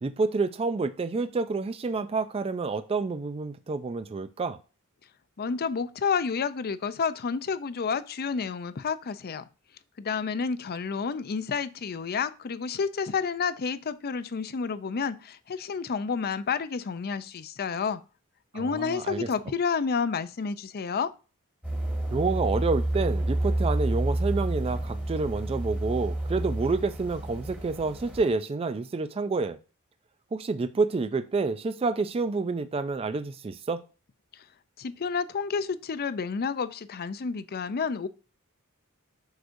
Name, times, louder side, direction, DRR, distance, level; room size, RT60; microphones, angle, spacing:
voice 1, 0.0-4.6 18.5-19.3 22.1-29.6 30.3-33.8, right 4 dB, 25° right, 0.3 m, -28 dB
voice 2, 5.4-9.5 10.0-18.0 18.5-21.1 34.3-34.4 34.8-38.1, left 5 dB, 45° left, 0.5 m, -30 dB
sound 1, 21.6-28.3, right 1 dB, 5° right, 1.5 m, -29 dB
8.0 x 6.4 x 2.6 m
head